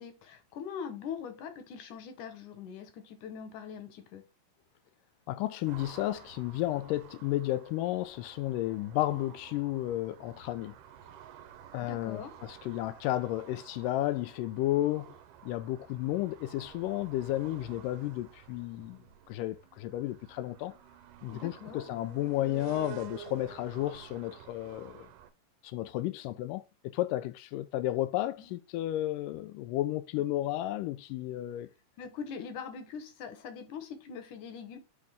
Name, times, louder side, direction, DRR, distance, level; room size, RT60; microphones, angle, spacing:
voice 1, 0.0-4.2 11.8-12.3 21.3-21.8 28.4-28.5 32.0-34.8, left 6 dB, 70° left, 2.5 m, -42 dB
voice 2, 5.3-10.8 11.7-15.2 15.4-20.8 21.2-25.1 25.6-31.7, left 15 dB, 90° left, 2.2 m, -33 dB
sound 1, 5.7-25.3, right 11 dB, 85° right, 2.2 m, -51 dB
8.7 x 3.6 x 3.5 m
omnidirectional pair, 3.8 m